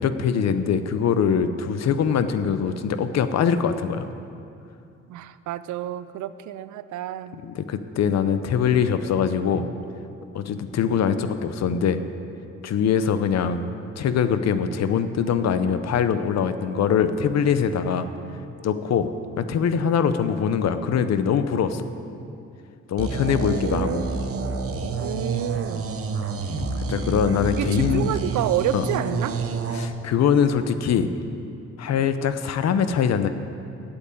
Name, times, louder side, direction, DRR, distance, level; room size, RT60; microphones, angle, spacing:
voice 1, 0.0-4.1 7.3-9.7 10.3-12.0 12.6-18.1 18.6-19.1 19.4-21.8 22.9-24.0 26.9-28.2 28.7-28.8 29.7-31.1 31.8-33.3, left 7 dB, 60° left, 11 dB, 0.8 m, -23 dB
voice 2, 5.1-7.4 23.3-24.4 25.0-25.9 27.6-29.4, right 12 dB, 75° right, 14 dB, 0.5 m, -29 dB
sound 1, 23.0-29.9, right 3 dB, 50° right, 1.1 m, -28 dB
8.6 x 8.1 x 8.6 m, 2.6 s
cardioid pair, 90°, 30 cm